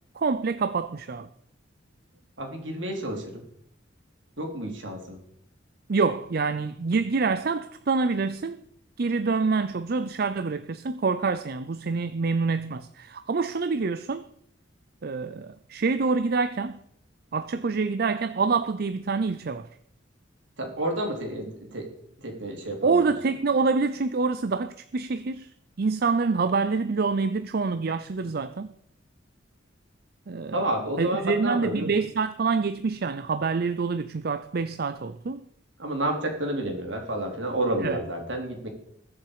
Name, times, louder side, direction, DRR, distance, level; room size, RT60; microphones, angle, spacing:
voice 1, 0.2-1.3 5.9-8.6 9.0-14.3 15.0-16.8 17.3-19.7 22.8-25.5 25.8-28.7 30.3-30.5 31.0-35.4 37.8-38.0, right 4 dB, 55° right, 0.5 m, -26 dB
voice 2, 2.4-3.4 4.4-5.2 20.6-21.9 22.2-23.1 30.5-31.9 35.8-38.7, right 1 dB, 75° right, 3.7 m, -30 dB
21.5 x 7.3 x 4.9 m
head